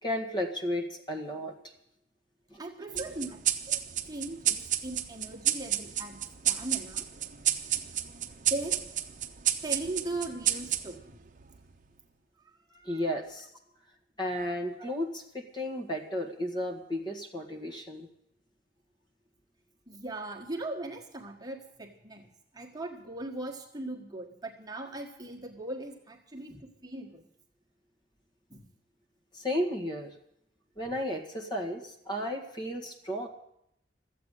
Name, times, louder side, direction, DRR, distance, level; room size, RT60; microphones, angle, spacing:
voice 1, 0.0-1.5 2.5-2.6 2.9-3.0 12.8-13.5 14.2-18.1 29.3-30.1 30.8-33.3, left 1 dB, 25° left, 1 dB, 1.8 m, -33 dB
voice 2, 2.6-3.4 3.7-3.8 4.0-7.1 8.2-8.9 9.6-11.2 12.4-13.0 14.8-14.9 19.9-22.3 22.5-27.2 28.5-28.7, right 2 dB, 20° right, 0 dB, 1.6 m, -39 dB
sound 1, 3.0-11.8, right 11 dB, 45° right, 0.8 m, -31 dB
14.0 x 8.4 x 9.9 m, 0.76 s
head